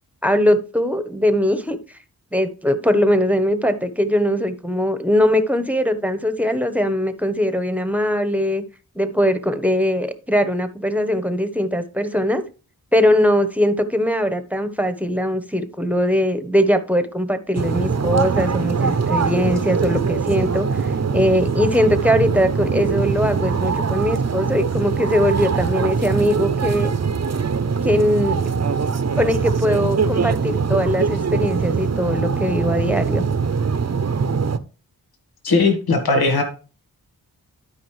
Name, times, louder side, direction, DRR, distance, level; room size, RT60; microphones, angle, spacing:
voice 1, 0.2-1.8 2.3-8.6 8.9-12.4 12.9-26.9 27.8-28.4 29.2-33.2, equal, 5° right, 1.2 m, -20 dB
sound 1, 17.6-34.6, right 5 dB, 45° right, 0.8 m, -22 dB
voice 2, 35.4-36.4, left 3 dB, 75° left, 1.6 m, -18 dB
12.5 x 5.1 x 3.3 m
cardioid pair, 50°, 37 cm